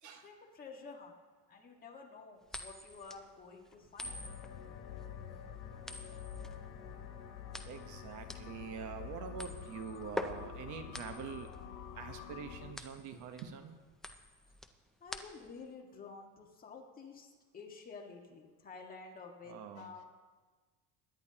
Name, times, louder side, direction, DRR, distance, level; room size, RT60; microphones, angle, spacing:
voice 1, 0.2-1.1 1.5-4.2 15.0-20.1, left 4 dB, 25° left, 0 dB, 1.7 m, -51 dB
sound 1, 2.5-15.7, left 1 dB, ahead, 0.4 m, -46 dB
sound 2, 4.0-12.7, left 9 dB, 85° left, 1.6 m, -47 dB
voice 2, 7.6-11.5 11.9-13.8 19.5-19.9, right 7 dB, 55° right, 7 dB, 1.1 m, -45 dB
22.0 x 10.5 x 2.9 m, 1.4 s
cardioid pair, 145°, 35 cm